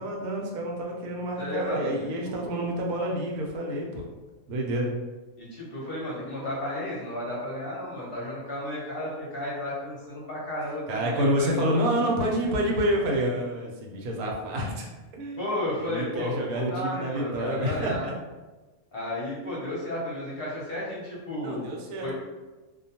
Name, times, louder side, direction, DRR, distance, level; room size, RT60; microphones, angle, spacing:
voice 1, 0.0-4.0 4.5-4.9 10.9-14.9 15.1-15.5 15.8-18.1 21.4-22.1, right 1 dB, 90° right, -1 dB, 1.1 m, -28 dB
voice 2, 1.4-1.9 2.2-2.5 5.4-11.7 15.4-18.1 18.9-21.7 22.0-22.1, left 1 dB, 50° left, -6 dB, 0.8 m, -33 dB
2.4 x 2.2 x 2.7 m, 1.2 s
omnidirectional pair, 1.5 m